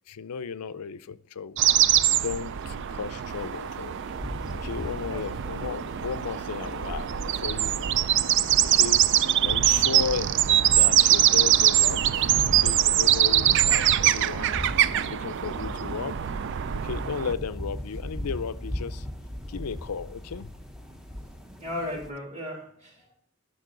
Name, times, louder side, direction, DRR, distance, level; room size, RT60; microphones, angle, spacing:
voice 1, 0.1-1.6 2.2-4.0 4.5-8.0 8.6-9.0 9.4-14.6 15.0-16.2 16.8-19.1 19.5-20.5, left 6 dB, 90° left, 0.5 m, -35 dB
sound 1, 1.6-17.3, right 11 dB, 55° right, 0.3 m, -23 dB
sound 2, 3.3-22.1, left 1 dB, 5° right, 0.7 m, -40 dB
voice 2, 21.6-23.1, left 1 dB, 30° right, 2.9 m, -36 dB
11.0 x 5.9 x 3.8 m
head